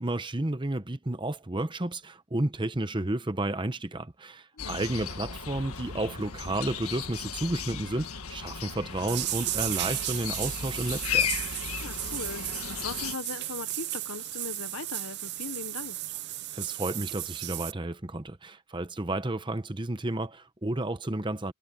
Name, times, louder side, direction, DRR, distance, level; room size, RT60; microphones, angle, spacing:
voice 1, 0.0-11.3 16.5-21.5, right 1 dB, 20° right, 0.9 m, -32 dB
sound 1, 4.6-13.2, left 7 dB, 85° left, 1.7 m, -35 dB
sound 2, 9.1-17.7, right 16 dB, 50° right, 0.5 m, -34 dB
voice 2, 11.8-16.0, left 5 dB, 65° left, 0.8 m, -39 dB
head